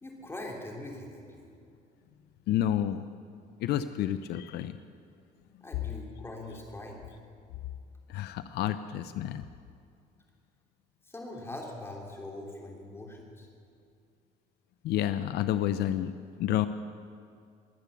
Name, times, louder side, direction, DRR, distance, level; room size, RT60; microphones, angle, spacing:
voice 1, 0.0-1.5 5.6-7.1 11.0-13.5, left 1 dB, 15° left, -1 dB, 3.2 m, -42 dB
voice 2, 2.5-3.0 3.6-4.8 8.1-9.4 14.8-16.1 16.4-16.7, left 11 dB, 75° left, 12 dB, 0.6 m, -29 dB
21.5 x 8.3 x 7.0 m, 2.4 s
cardioid pair, 110°, 17 cm